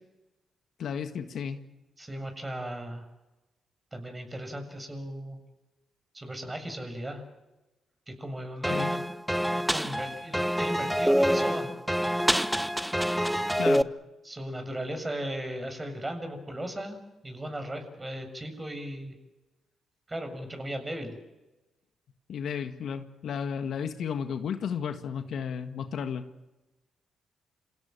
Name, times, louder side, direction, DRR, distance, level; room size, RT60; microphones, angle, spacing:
voice 1, 0.8-1.6 8.7-8.9 13.6-13.9 22.3-26.2, left 7 dB, 65° left, 8 dB, 1.7 m, -33 dB
voice 2, 2.0-3.1 3.9-5.4 6.1-7.2 8.1-9.0 9.7-11.7 14.2-19.1 20.1-21.2, right 1 dB, 20° right, 6 dB, 7.2 m, -37 dB
sound 1, 8.6-13.8, equal, 5° right, 1.1 m, -26 dB
28.5 x 17.0 x 9.1 m, 1.1 s
hypercardioid pair, 50°, 0 cm